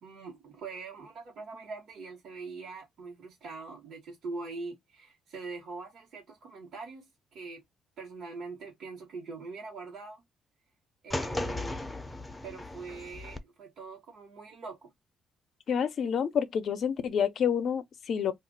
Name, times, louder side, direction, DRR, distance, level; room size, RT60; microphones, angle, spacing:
voice 1, 0.0-7.6 8.0-10.2 11.0-11.9 12.4-14.9, right 4 dB, 65° right, 1.1 m, -43 dB
sound 1, 11.1-13.4, left 2 dB, 15° left, 0.5 m, -36 dB
voice 2, 15.7-18.3, left 7 dB, 60° left, 0.6 m, -28 dB
2.4 x 2.1 x 3.8 m
cardioid pair, 90°, 0 cm